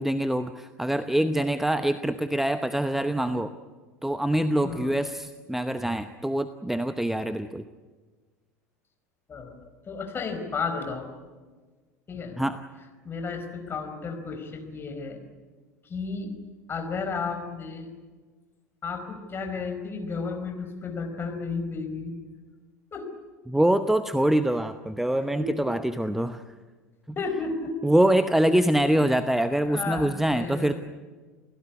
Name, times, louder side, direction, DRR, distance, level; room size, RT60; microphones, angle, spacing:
voice 1, 0.0-3.5 4.0-7.6 12.4-12.6 23.5-26.4 27.8-30.7, right 1 dB, 5° right, 11 dB, 0.9 m, -24 dB
voice 2, 4.6-5.1 9.3-9.6 9.9-11.1 12.1-12.4 13.0-15.2 15.8-16.3 16.7-17.9 18.8-22.2 22.9-23.1 25.4-25.7 27.2-27.7 28.8-29.0 29.6-30.8, left 4 dB, 25° left, 5 dB, 4.8 m, -33 dB
29.5 x 16.5 x 9.7 m, 1.4 s
figure-of-eight pair, 75°, 9 cm